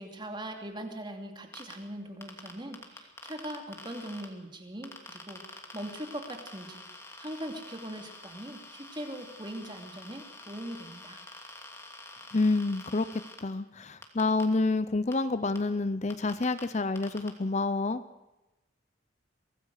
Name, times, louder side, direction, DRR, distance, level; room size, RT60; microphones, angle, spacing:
voice 1, 0.0-6.9 7.2-11.2, right 1 dB, 25° right, 4 dB, 2.7 m, -41 dB
sound 1, 1.5-1.7 2.2-4.2 4.8-13.4 14.0-14.4 15.1-15.2 15.5-15.6 16.1-16.6 17.0-17.3, left 2 dB, 15° left, 2.6 m, -47 dB
voice 2, 12.3-18.0, left 3 dB, 40° left, 13 dB, 0.7 m, -28 dB
24.5 x 17.5 x 6.6 m, 1.0 s
head